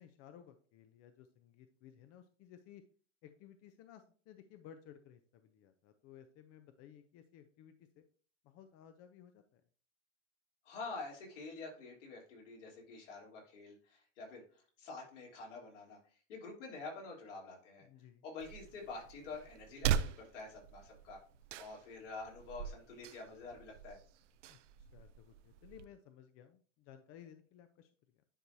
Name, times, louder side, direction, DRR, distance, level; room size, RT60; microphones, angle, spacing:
voice 1, 0.0-2.8 3.2-8.1 8.4-9.6 17.8-18.2 24.5-27.9 28.1-28.2, left 9 dB, 40° left, 9 dB, 0.7 m, -58 dB
voice 2, 10.6-14.4 14.8-16.0 16.3-17.9 18.2-21.2 21.6-24.0, left 3 dB, 75° left, -2 dB, 3.5 m, -47 dB
sound 1, 18.4-25.9, right 9 dB, 75° right, 0.7 m, -41 dB
10.0 x 4.5 x 2.8 m, 0.43 s
hypercardioid pair, 115°, 36 cm